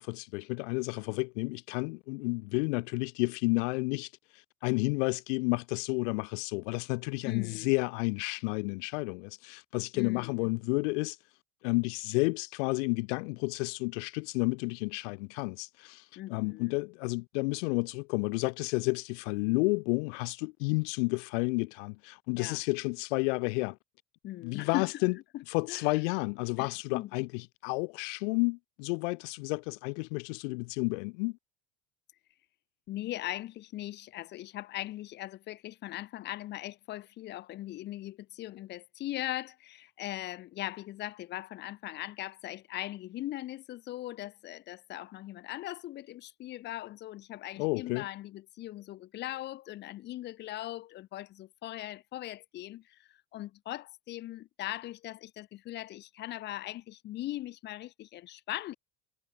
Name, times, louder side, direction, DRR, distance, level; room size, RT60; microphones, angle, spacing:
voice 1, 0.0-11.2 11.6-23.8 24.4-25.1 25.5-31.4 47.6-48.1, left 28 dB, 80° left, 0.7 m, -31 dB
voice 2, 7.2-7.7 9.9-10.5 16.2-16.7 22.4-22.6 24.2-25.0 25.3-25.4 25.7-26.0 26.6-27.1 32.9-58.8, left 15 dB, 30° left, 0.8 m, -40 dB
cardioid pair, 175°, 36 cm